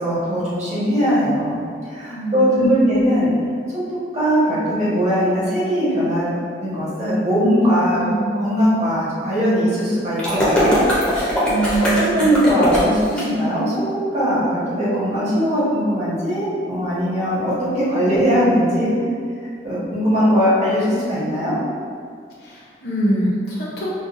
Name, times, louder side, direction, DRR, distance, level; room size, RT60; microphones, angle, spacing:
voice 1, 0.0-1.6 1.9-3.3 3.7-8.0 8.3-10.8 11.1-11.5 11.8-18.9 19.6-21.6, equal, 40° right, -9 dB, 1.1 m, -20 dB
voice 2, 2.1-3.0 7.9-8.3 11.4-12.3 22.4-24.0, right 1 dB, 65° left, -7 dB, 0.7 m, -24 dB
sound 1, 10.2-13.2, equal, 5° left, 0.6 m, -20 dB
5.1 x 2.2 x 2.5 m, 2.2 s
head